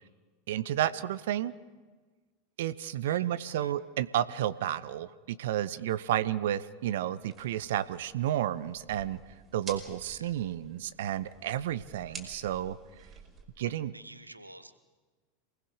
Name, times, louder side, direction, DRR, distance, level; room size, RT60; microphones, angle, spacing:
voice 1, 0.5-1.5 2.6-9.2 9.5-12.8 13.6-13.9, right 12 dB, 60° right, 16 dB, 0.7 m, -31 dB
voice 2, 2.8-3.3 3.6-3.7 10.1-10.3 12.1-12.2 13.6-14.7, right 1 dB, 85° right, 12 dB, 1.4 m, -51 dB
sound 1, 7.2-13.4, right 4 dB, 20° right, 5.3 m, -50 dB
27.5 x 20.0 x 6.6 m, 1.3 s
figure-of-eight pair, 85°, 0 cm